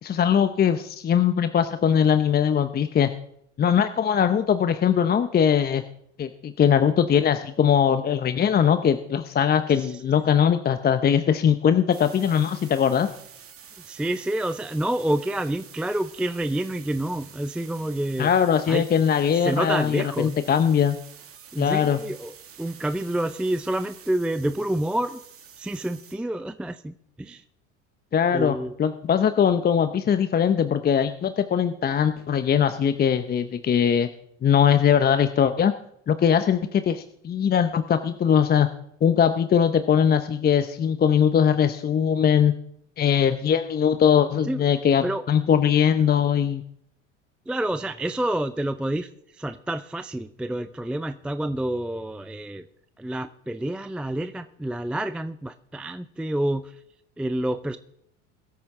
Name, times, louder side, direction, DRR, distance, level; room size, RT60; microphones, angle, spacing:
voice 1, 0.0-3.1 3.6-5.8 6.2-13.1 18.2-21.0 21.6-22.0 28.1-34.1 34.4-35.7 36.1-38.7 39.0-42.5 43.0-46.6, left 8 dB, 25° left, 10 dB, 0.7 m, -21 dB
sound 1, 11.9-26.2, right 7 dB, 40° right, 2.1 m, -48 dB
voice 2, 13.9-18.3 18.7-18.8 19.3-20.4 21.5-25.2 25.6-27.4 28.3-28.7 44.4-44.6 45.0-45.2 47.5-52.7 53.0-56.8 57.2-57.8, right 1 dB, 5° right, 11 dB, 0.4 m, -28 dB
22.0 x 8.6 x 3.7 m, 0.72 s
hypercardioid pair, 85°, 36 cm